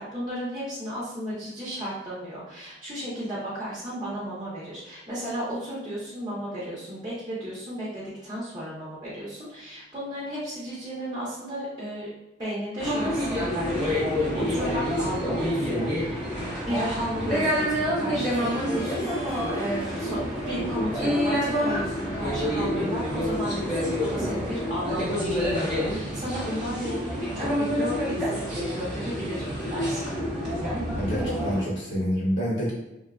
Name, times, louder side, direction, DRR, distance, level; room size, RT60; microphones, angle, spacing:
voice 1, 0.0-12.1 12.4-14.0 14.3-16.3 16.6-20.2 20.5-30.1, equal, 20° right, -9 dB, 0.8 m, -34 dB
sound 1, 12.8-31.6, equal, 5° right, 1.3 m, -28 dB
Harp, 18.2-23.6, right 1 dB, 45° left, 0.7 m, -42 dB
voice 2, 30.9-32.7, equal, 60° left, -5 dB, 1.0 m, -27 dB
3.7 x 2.1 x 2.4 m, 0.95 s
head